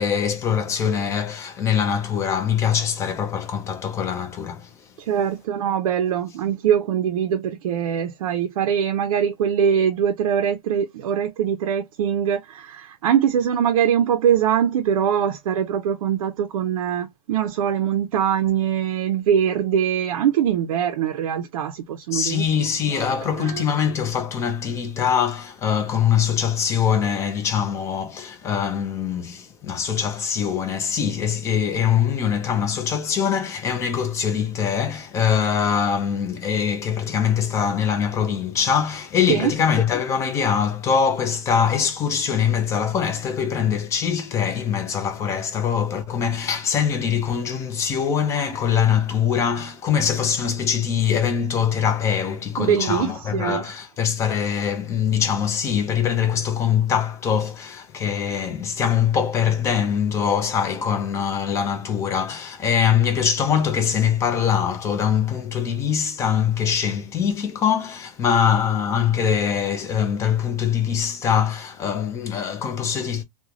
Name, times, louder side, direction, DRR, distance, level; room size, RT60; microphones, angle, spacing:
voice 1, 0.0-4.7 22.1-73.2, left 7 dB, 15° left, 0.5 m, -23 dB
voice 2, 5.0-22.6 22.9-23.7 39.3-39.5 52.6-53.7, right 8 dB, 70° right, 0.5 m, -22 dB
3.1 x 2.2 x 2.4 m
supercardioid pair, 155°, 19 cm